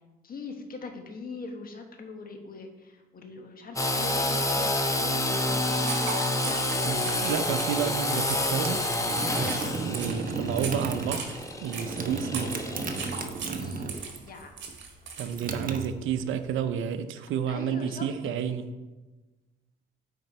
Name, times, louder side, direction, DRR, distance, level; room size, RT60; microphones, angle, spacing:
voice 1, 0.2-7.4 10.0-10.4 13.4-14.5 17.5-18.4, left 4 dB, 45° left, 4 dB, 1.3 m, -42 dB
Engine / Sawing, 3.8-13.3, left 1 dB, 15° left, 0.8 m, -29 dB
sound 1, 5.5-15.5, right 5 dB, 65° right, 1.3 m, -39 dB
voice 2, 6.8-8.8 9.8-11.3 11.6-12.6 15.2-18.7, right 8 dB, 80° right, 10 dB, 0.6 m, -31 dB
sound 2, 7.8-14.3 14.6-16.5, right 4 dB, 45° right, 0.8 m, -35 dB
9.1 x 4.4 x 4.2 m, 1.2 s
cardioid pair, 90°, 20 cm